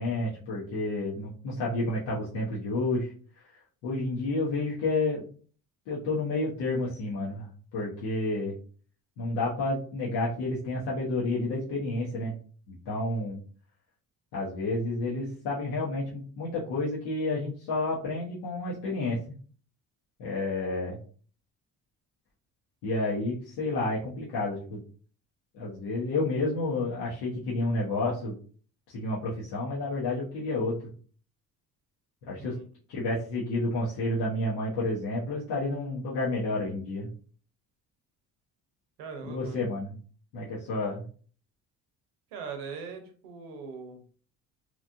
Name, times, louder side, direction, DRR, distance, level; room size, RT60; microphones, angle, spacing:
voice 1, 0.0-3.5 3.8-5.2 5.9-8.6 9.2-12.3 12.7-13.4 14.3-19.2 20.2-21.0 22.8-24.8 25.5-28.4 28.9-30.9 32.3-32.6 32.9-37.1 39.2-40.0 40.3-41.0, left 2 dB, 80° left, -6 dB, 1.0 m, -30 dB
voice 2, 39.0-39.6 42.3-44.0, right 5 dB, 90° right, 5 dB, 0.8 m, -41 dB
3.0 x 2.5 x 2.5 m, 0.42 s
supercardioid pair, 75°, 36 cm